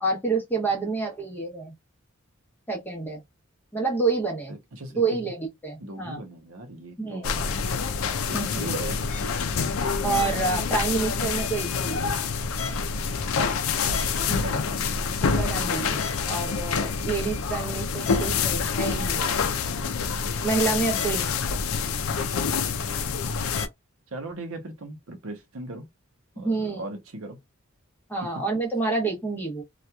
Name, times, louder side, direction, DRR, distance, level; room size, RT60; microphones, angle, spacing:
voice 1, 0.0-1.7 2.7-3.2 3.7-4.5 4.9-6.2 7.0-7.3 8.3-8.7 10.0-12.1 15.2-19.3 20.4-21.3 26.4-26.8 28.1-29.6, right 3 dB, 10° left, 0.9 m, -28 dB
voice 2, 4.5-5.2 5.8-7.5 8.3-9.1 13.8-14.9 20.8-21.2 22.6-23.1 24.1-25.9 26.3-27.4, right 2 dB, 75° right, 0.8 m, -39 dB
sound 1, 7.2-23.7, left 5 dB, 80° left, 0.4 m, -27 dB
2.8 x 2.4 x 2.2 m
head